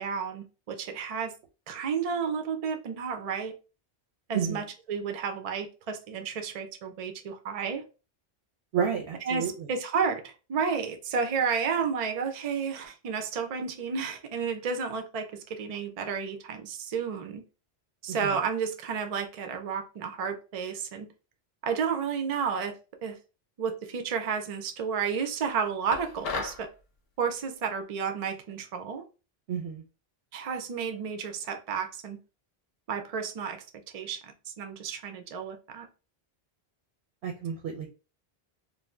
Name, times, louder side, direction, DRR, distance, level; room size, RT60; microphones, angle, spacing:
voice 1, 0.0-1.3 1.7-3.5 4.3-7.8 9.3-17.4 18.0-21.1 21.6-22.8 23.0-23.2 23.6-26.7 27.2-29.0 30.3-32.2 32.9-33.6 33.9-35.9, right 6 dB, 55° right, 6 dB, 0.4 m, -31 dB
voice 2, 8.7-9.7 18.1-18.3 29.5-29.8 37.2-37.9, right 7 dB, 85° right, 1 dB, 0.8 m, -31 dB
sound 1, 25.9-26.7, left 4 dB, 70° left, 0.8 m, -33 dB
2.5 x 2.0 x 3.1 m, 0.33 s
omnidirectional pair, 1.1 m